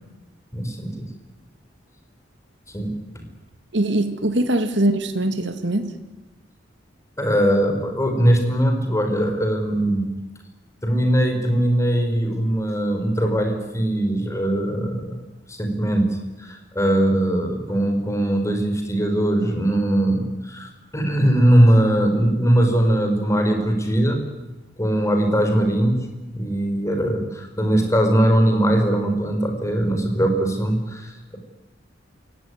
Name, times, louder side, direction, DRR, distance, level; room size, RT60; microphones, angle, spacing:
voice 1, 0.5-1.1 2.7-3.2 7.2-10.1 10.8-15.2 15.5-16.1 16.4-24.3 24.8-26.1 26.3-31.4, right 1 dB, 15° left, 5 dB, 4.8 m, -20 dB
voice 2, 3.7-5.9, right 1 dB, 70° right, 8 dB, 2.2 m, -22 dB
28.5 x 16.5 x 9.7 m, 1.1 s
head